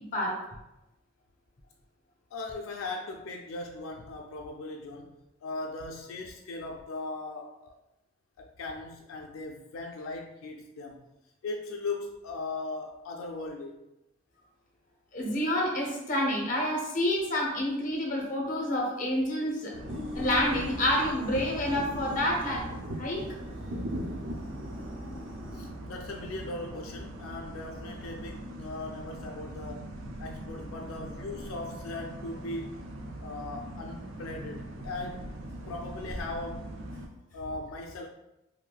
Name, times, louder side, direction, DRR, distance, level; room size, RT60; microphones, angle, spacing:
voice 1, 2.3-5.1 5.4-7.7 8.4-11.0 11.4-13.8 25.5-29.9 30.2-32.8 33.2-35.3 35.7-36.7 37.3-38.1, left 2 dB, 80° left, 1 dB, 0.3 m, -39 dB
voice 2, 15.1-19.7 20.1-22.7 23.0-23.2, left 1 dB, 40° left, -1 dB, 0.7 m, -28 dB
sound 1, 19.7-37.1, right 1 dB, 65° right, 0.4 m, -40 dB
sound 2, 19.9-25.7, left 1 dB, 5° right, 0.5 m, -43 dB
3.2 x 2.6 x 2.3 m, 0.93 s
head